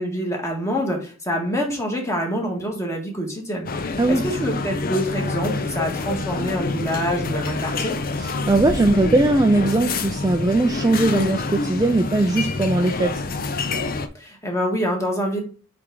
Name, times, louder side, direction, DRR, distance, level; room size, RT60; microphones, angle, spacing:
voice 1, 0.0-7.9 14.1-15.4, equal, 15° left, 0 dB, 1.7 m, -26 dB
sound 1, 3.7-14.1, left 3 dB, 45° left, 0.6 m, -27 dB
voice 2, 4.0-4.3 8.2-13.1, right 2 dB, 15° right, 5 dB, 0.4 m, -19 dB
7.7 x 3.4 x 3.9 m, 0.38 s
head